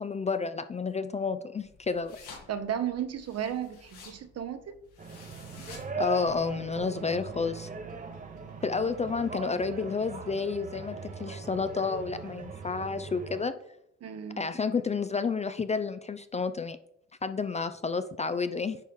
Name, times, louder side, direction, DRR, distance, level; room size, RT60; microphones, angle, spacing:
voice 1, 0.0-2.2 6.0-7.7 8.6-13.5 14.4-16.8 17.2-18.8, left 4 dB, 25° left, 11 dB, 0.4 m, -30 dB
sound 1, 1.6-6.9, left 4 dB, 90° left, 2.2 m, -52 dB
voice 2, 2.5-4.8 14.0-14.5, right 9 dB, 55° right, 10 dB, 0.9 m, -34 dB
sound 2, 5.0-13.4, right 3 dB, 25° right, 0.9 m, -40 dB
sound 3, 5.3-12.9, right 13 dB, 80° right, 0.6 m, -50 dB
8.8 x 4.6 x 3.6 m, 0.75 s
cardioid pair, 90°, 30 cm